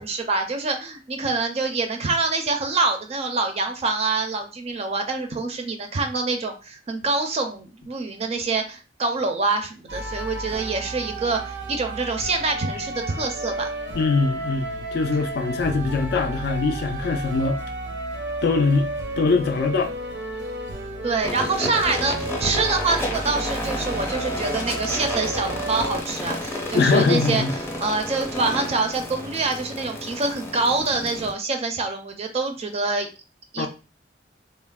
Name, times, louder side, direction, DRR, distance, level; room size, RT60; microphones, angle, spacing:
voice 1, 0.0-13.7 21.0-27.4 27.8-33.1 33.5-33.7, right 3 dB, 35° right, 0.4 m, -25 dB
sound 1, 9.9-26.0, right 2 dB, 85° right, 0.5 m, -32 dB
voice 2, 13.9-17.6 18.4-18.9 19.2-19.9 26.7-27.6 33.6-33.7, left 4 dB, 60° left, 0.4 m, -22 dB
sound 2, 21.2-31.3, left 1 dB, 15° left, 0.6 m, -31 dB
3.2 x 2.0 x 2.2 m
head